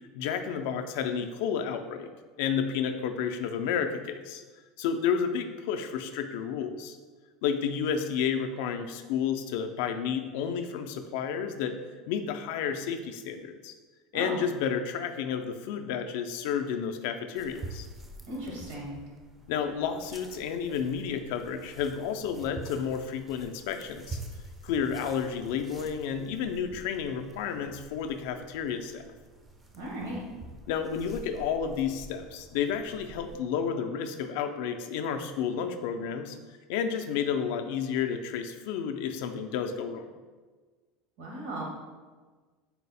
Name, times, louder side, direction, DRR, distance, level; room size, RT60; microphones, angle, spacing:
voice 1, 0.1-2.1 2.4-4.4 4.8-7.0 7.4-11.7 12.1-13.7 14.1-17.9 19.5-24.2 24.6-29.0 30.7-36.4 36.7-40.0, left 7 dB, 70° left, 7 dB, 0.3 m, -31 dB
voice 2, 14.1-14.4 18.3-19.0 29.7-30.2 41.2-41.6, right 1 dB, 85° right, -3 dB, 1.3 m, -36 dB
sound 1, 17.4-33.4, right 2 dB, 15° right, 0.3 m, -47 dB
4.0 x 2.0 x 4.0 m, 1.4 s
supercardioid pair, 150°, 0 cm